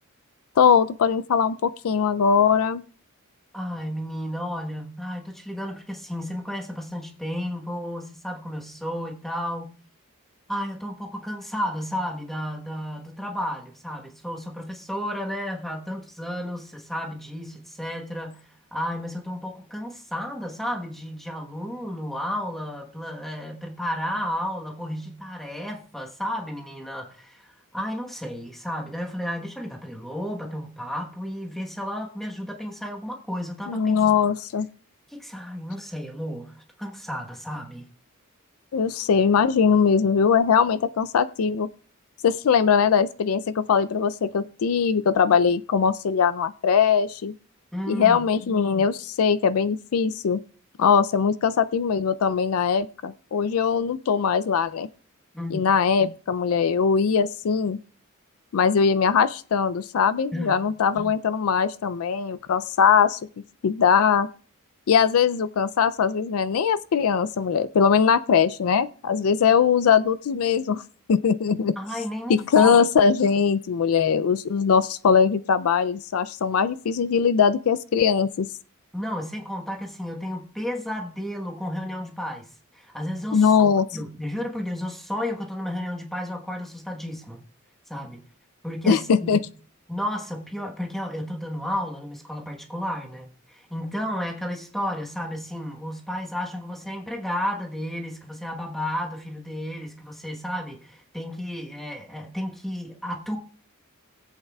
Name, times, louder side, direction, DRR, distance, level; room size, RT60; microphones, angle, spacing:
voice 1, 0.6-2.8 33.7-34.7 38.7-41.7 42.2-47.3 47.9-50.4 50.8-54.9 55.5-57.8 58.5-63.2 63.6-64.3 64.9-70.8 71.1-71.8 72.3-78.5 83.3-83.9 88.9-89.4, left 6 dB, 85° left, 0.4 m, -21 dB
voice 2, 3.5-9.7 10.5-18.4 18.7-34.0 35.1-36.5 36.8-37.9 47.7-48.2 55.3-55.7 60.3-60.6 71.8-72.8 78.9-82.5 82.7-83.5 83.9-87.4 87.9-88.2 88.6-89.4 89.9-103.4, equal, ahead, 1.2 m, -32 dB
21.0 x 8.1 x 2.3 m
head